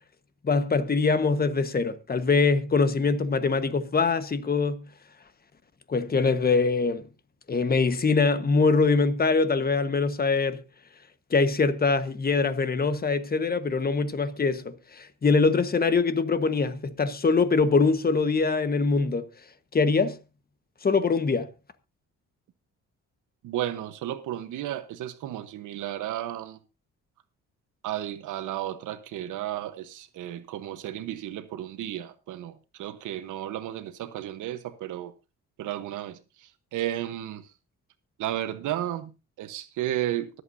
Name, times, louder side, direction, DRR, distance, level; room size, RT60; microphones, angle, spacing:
voice 1, 0.4-4.8 5.9-7.1 7.5-10.6 11.3-19.3 19.7-20.2 20.8-21.5, left 4 dB, 30° left, 1.3 m, -23 dB
voice 2, 23.4-26.6 27.8-35.1 35.6-37.5 38.2-40.4, right 12 dB, 85° right, 1.1 m, -33 dB
24.0 x 8.2 x 2.7 m
cardioid pair, 90°, 30 cm